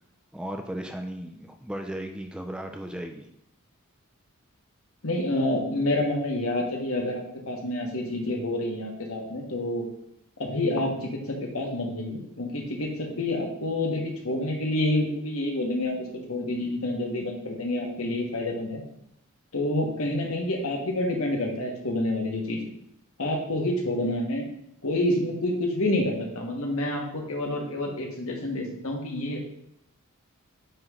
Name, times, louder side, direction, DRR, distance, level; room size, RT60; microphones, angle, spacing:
voice 1, 0.3-3.3, right 1 dB, 5° right, 4 dB, 0.3 m, -36 dB
voice 2, 5.0-9.8 10.4-16.0 16.3-18.8 19.5-22.6 23.2-24.4 24.8-29.4, left 1 dB, 70° left, 0 dB, 1.3 m, -28 dB
8.8 x 3.2 x 3.7 m, 0.75 s
head